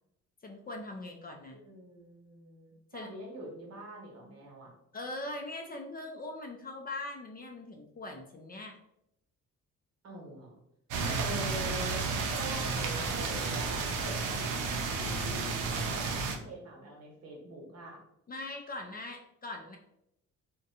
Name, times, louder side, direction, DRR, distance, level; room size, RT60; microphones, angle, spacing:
voice 1, 0.4-1.6 2.9-3.1 4.9-8.8 11.1-11.4 12.6-13.1 18.3-19.8, left 2 dB, 30° left, 3 dB, 0.4 m, -41 dB
voice 2, 1.5-4.7 10.0-10.5 11.2-18.0, right 1 dB, 60° right, -1 dB, 1.0 m, -45 dB
sound 1, 10.9-16.4, right 4 dB, 85° right, 0.5 m, -32 dB
2.6 x 2.2 x 2.7 m, 0.80 s
cardioid pair, 90°, 30 cm